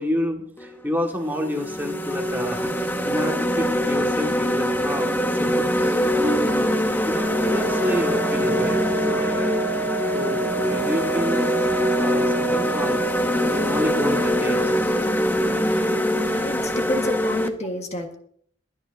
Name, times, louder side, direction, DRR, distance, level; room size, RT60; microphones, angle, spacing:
voice 1, 0.0-6.7 7.1-9.9 10.1-11.5 12.0-13.2 13.5-14.7, left 1 dB, 10° right, 2 dB, 1.8 m, -29 dB
sound 1, 0.6-0.7 1.3-17.5, equal, 10° left, 0.9 m, -23 dB
Wind instrument woodwind instrument, 7.0-14.8, right 7 dB, 55° right, 1.0 m, -31 dB
voice 2, 16.3-18.2, left 1 dB, 35° left, 4 dB, 1.5 m, -29 dB
22.0 x 9.8 x 2.7 m, 0.62 s
head